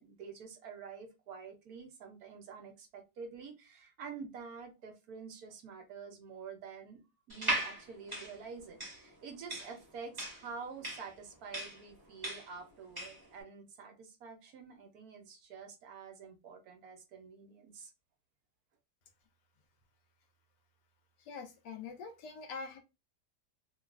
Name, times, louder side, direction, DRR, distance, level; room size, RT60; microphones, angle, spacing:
voice 1, 0.0-7.0 7.3-17.9, right 5 dB, 70° right, 4 dB, 1.0 m, -48 dB
sound 1, 7.3-13.3, right 1 dB, 15° right, 0.9 m, -38 dB
voice 2, 21.2-22.8, left 5 dB, 80° left, 5 dB, 1.3 m, -44 dB
3.1 x 2.3 x 2.4 m, 0.25 s
omnidirectional pair, 1.9 m